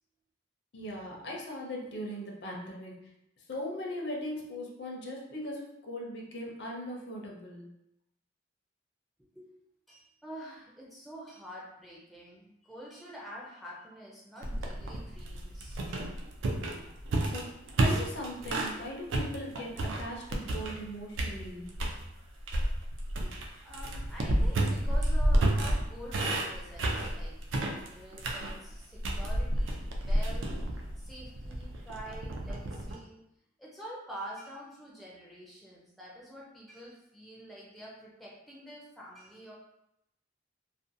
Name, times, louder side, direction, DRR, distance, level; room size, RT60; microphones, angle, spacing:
voice 1, 0.7-3.0 3.5-7.7 17.2-17.5 17.8-21.7, left 1 dB, 60° left, -1 dB, 0.5 m, -39 dB
voice 2, 9.2-9.5 9.9-16.1 23.2-23.4 23.6-33.2 33.6-39.5, equal, ahead, -5 dB, 0.4 m, -47 dB
sound 1, 14.4-18.8 19.1-20.9 21.2-22.0 22.5-32.9, right 1 dB, 85° right, 0.4 m, -30 dB
2.5 x 2.2 x 2.6 m, 0.81 s
head